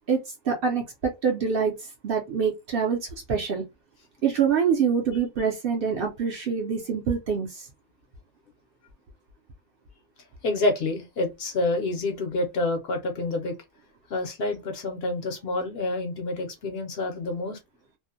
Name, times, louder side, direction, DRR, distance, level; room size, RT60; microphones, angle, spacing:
voice 1, 0.4-3.0 3.3-3.6 4.2-7.7, right 6 dB, 60° right, 0.7 m, -25 dB
voice 2, 10.4-13.5 14.1-17.6, left 2 dB, 60° left, 0.7 m, -28 dB
2.5 x 2.0 x 2.6 m
omnidirectional pair, 1.3 m